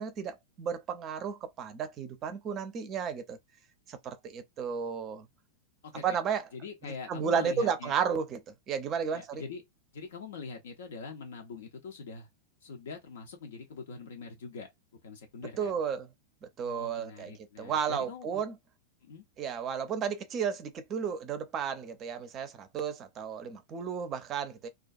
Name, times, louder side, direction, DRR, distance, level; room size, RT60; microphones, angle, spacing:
voice 1, 0.0-3.4 3.9-5.3 6.0-6.4 6.8-8.4 8.7-9.4 15.6-16.1 16.6-18.5 19.4-24.7, right 7 dB, 30° right, 0.5 m, -33 dB
voice 2, 5.8-6.2 6.5-8.1 9.1-9.6 9.9-12.3 12.6-14.7 15.0-15.8 16.6-18.4 19.0-19.2, left 4 dB, 60° left, 0.5 m, -43 dB
2.3 x 2.2 x 2.5 m
figure-of-eight pair, 90°, 0 cm